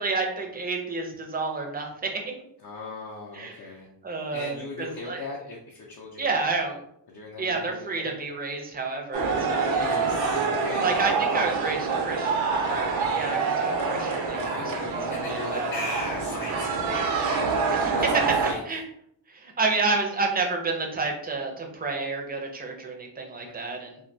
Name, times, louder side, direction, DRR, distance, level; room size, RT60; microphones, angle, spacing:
voice 1, 0.0-2.2 3.3-3.6 4.0-5.3 6.2-6.8 7.4-9.9 10.8-15.0 15.3-15.7 17.7-18.2 18.7-18.8 19.3-24.0, right 3 dB, 20° right, 1 dB, 0.4 m, -30 dB
voice 2, 2.6-3.9 4.3-6.5 7.1-8.1 9.4-11.0 14.3-18.6 23.4-23.5, left 2 dB, 55° left, -3 dB, 0.5 m, -38 dB
sound 1, 9.1-18.5, right 4 dB, 85° right, 0.5 m, -26 dB
2.2 x 2.2 x 2.6 m, 0.71 s
wide cardioid pair, 115°, 44 cm